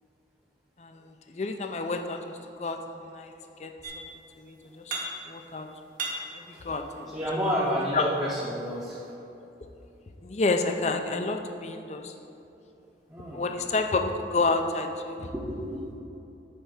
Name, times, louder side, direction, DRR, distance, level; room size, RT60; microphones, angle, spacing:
voice 1, 0.8-2.8 3.1-3.3 3.6-4.0 4.4-5.7 6.3-7.1 7.4-7.6 7.9-8.1 10.2-12.1 13.3-15.3, left 3 dB, 40° left, 5 dB, 0.5 m, -30 dB
sound 1, 3.8-4.4 4.6-5.5 5.8-7.4 8.0-9.1, right 2 dB, 50° right, 1.4 m, -38 dB
voice 2, 7.1-9.0 13.1-13.5 15.3-15.9, equal, 15° right, -7 dB, 0.8 m, -30 dB
8.7 x 3.4 x 6.5 m, 2.8 s
head